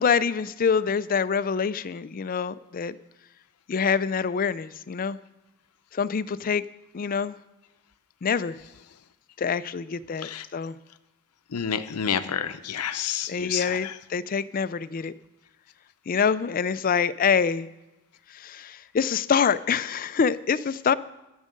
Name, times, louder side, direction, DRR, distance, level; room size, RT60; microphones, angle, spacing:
voice 1, 0.0-3.0 3.7-5.2 5.9-6.7 6.9-7.4 8.2-8.6 9.4-10.8 13.3-15.1 16.1-17.7 18.3-20.9, left 6 dB, 40° left, 15 dB, 0.4 m, -25 dB
voice 2, 10.2-10.7 11.5-14.0, left 8 dB, 85° left, 11 dB, 0.6 m, -30 dB
12.5 x 6.4 x 7.7 m, 1.0 s
head